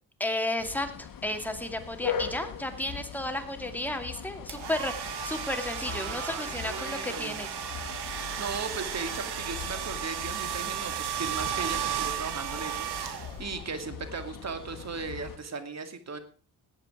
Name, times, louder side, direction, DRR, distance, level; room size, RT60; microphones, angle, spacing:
voice 1, 0.2-7.5, left 1 dB, 5° left, 5 dB, 2.3 m, -33 dB
sound 1, 0.6-15.4, left 8 dB, 55° left, 1.4 m, -41 dB
sound 2, 4.5-13.6, right 9 dB, 80° right, 1.9 m, -34 dB
voice 2, 5.9-7.3 8.1-16.2, right 4 dB, 40° right, 9 dB, 2.2 m, -37 dB
18.5 x 8.1 x 4.9 m, 0.42 s
cardioid pair, 95°, 39 cm